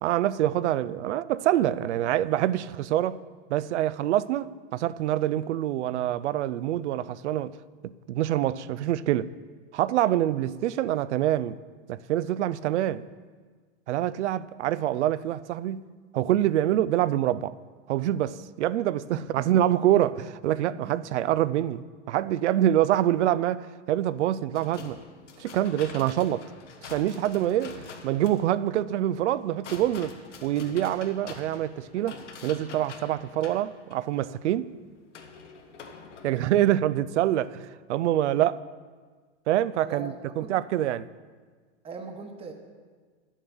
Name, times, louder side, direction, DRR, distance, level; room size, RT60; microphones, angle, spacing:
voice 1, 0.0-3.2 3.5-7.6 7.8-9.3 9.7-11.6 11.9-13.1 13.9-17.6 17.9-25.0 25.4-26.5 26.8-30.1 30.4-34.7 36.2-38.6 39.5-41.1, right 12 dB, 75° right, 0.6 m, -26 dB
voice 2, 19.1-19.5 20.9-21.0 38.3-38.4 39.8-40.1 40.4-40.5 41.8-42.5, right 4 dB, 15° right, 1.0 m, -40 dB
sound 1, 24.5-36.5, left 5 dB, 90° left, 1.4 m, -45 dB
9.5 x 7.4 x 7.0 m
hypercardioid pair, 125°, 35 cm